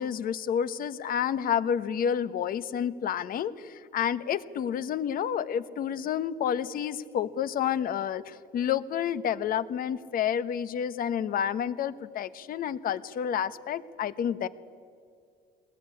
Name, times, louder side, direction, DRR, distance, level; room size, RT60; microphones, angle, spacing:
voice 1, 0.0-14.5, left 8 dB, 60° left, 14 dB, 1.2 m, -29 dB
22.5 x 20.0 x 9.9 m, 2.4 s
cardioid pair, 110°, 17 cm